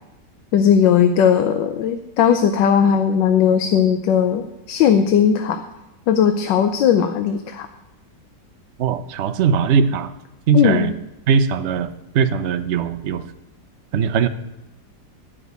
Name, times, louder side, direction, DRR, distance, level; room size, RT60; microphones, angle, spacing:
voice 1, 0.5-5.6 6.1-7.7 10.5-10.9, left 8 dB, 85° left, 7 dB, 1.4 m, -17 dB
voice 2, 8.8-10.1 10.5-10.9 11.3-11.9 12.1-13.2 13.9-14.3, right 6 dB, 70° right, 10 dB, 0.6 m, -19 dB
11.0 x 6.2 x 8.0 m, 0.94 s
omnidirectional pair, 1.9 m